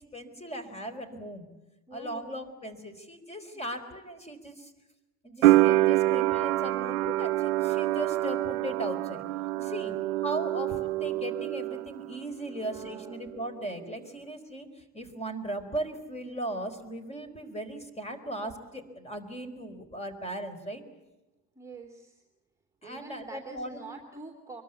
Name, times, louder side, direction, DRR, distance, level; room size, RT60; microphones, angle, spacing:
voice 1, 0.0-1.5 1.9-4.7 5.2-9.2 9.6-9.9 10.2-20.8 22.8-24.0, right 1 dB, 15° left, 11 dB, 4.5 m, -38 dB
voice 2, 1.9-2.3 3.5-3.6 9.5-10.0 12.5-13.3 21.5-22.2 22.8-24.6, right 3 dB, 5° right, 2 dB, 2.8 m, -46 dB
sound 1, 5.4-12.2 12.5-13.4, right 17 dB, 65° right, 0.8 m, -26 dB
24.5 x 22.5 x 8.4 m, 1.0 s
hypercardioid pair, 80°, 47 cm